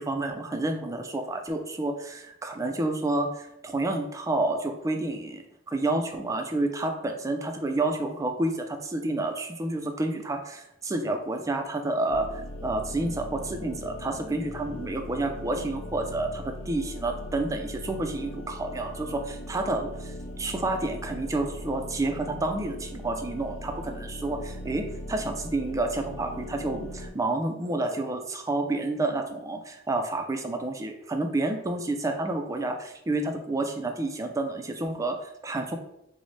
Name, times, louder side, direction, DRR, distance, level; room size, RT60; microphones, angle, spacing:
voice 1, 0.0-35.8, right 2 dB, 15° right, 5 dB, 0.3 m, -29 dB
sound 1, 12.1-27.1, left 1 dB, 70° left, 0.4 m, -39 dB
3.1 x 2.0 x 3.9 m, 0.82 s
head